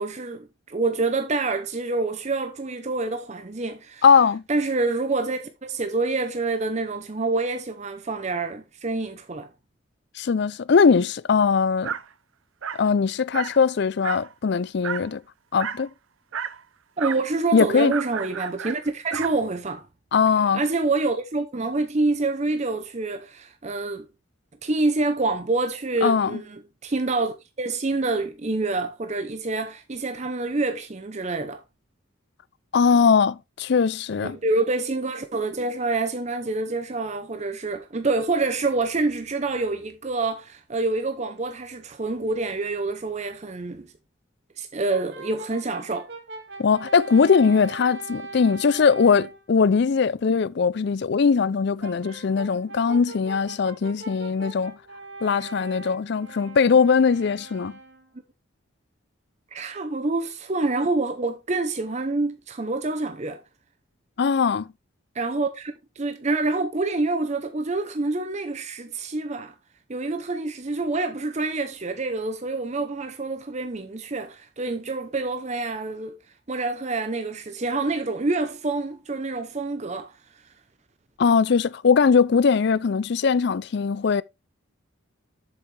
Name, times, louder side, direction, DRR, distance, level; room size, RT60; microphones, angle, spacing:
voice 1, 0.0-4.0 4.5-9.5 17.0-19.8 20.5-24.1 24.6-31.6 34.2-43.9 44.6-46.1 59.5-63.4 65.1-69.5 69.9-76.2 76.5-80.1, right 3 dB, 35° right, 0.7 m, -27 dB
voice 2, 4.0-4.4 10.2-11.9 12.8-15.2 15.5-15.9 17.5-17.9 20.1-20.6 26.0-26.4 32.7-34.4 46.6-54.7 55.2-57.7 64.2-64.7 81.2-84.2, left 5 dB, 55° left, 0.4 m, -20 dB
Dog, 11.8-12.1 12.6-12.9 13.3-13.6 14.0-14.3 14.8-15.1 15.6-15.9 16.3-16.6 17.0-17.3 17.9-19.4, right 7 dB, 80° right, 0.6 m, -32 dB
Brass instrument, 44.9-49.4 51.8-58.1, right 3 dB, 55° right, 2.0 m, -41 dB
7.4 x 7.3 x 3.3 m
head